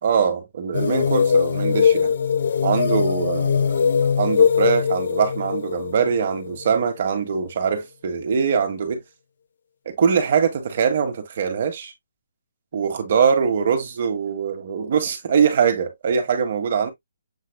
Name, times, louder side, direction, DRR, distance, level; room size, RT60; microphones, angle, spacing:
voice 1, 0.0-2.1 2.6-9.0 9.8-11.9 12.7-16.9, right 6 dB, 50° right, 1.4 m, -22 dB
sound 1, 0.7-7.2, left 6 dB, 60° left, 0.5 m, -21 dB
7.4 x 3.2 x 2.2 m
hypercardioid pair, 160°, 0 cm